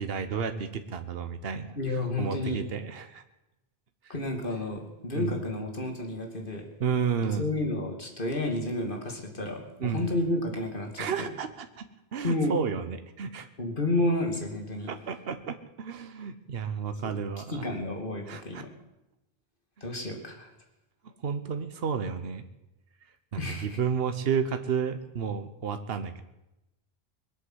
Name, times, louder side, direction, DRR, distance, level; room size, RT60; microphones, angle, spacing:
voice 1, 0.0-3.2 4.0-4.1 5.1-5.4 6.8-7.5 9.8-10.1 11.0-13.5 14.9-17.6 18.3-18.6 19.8-19.9 21.0-22.4 23.3-26.2, right 6 dB, 70° right, 9 dB, 1.2 m, -32 dB
voice 2, 1.8-2.6 4.1-6.7 7.2-11.3 12.2-12.5 13.6-14.9 17.5-18.7 19.8-20.5 23.4-23.8, left 2 dB, 55° left, 2 dB, 2.7 m, -31 dB
21.0 x 8.4 x 8.0 m, 0.93 s
omnidirectional pair, 1.1 m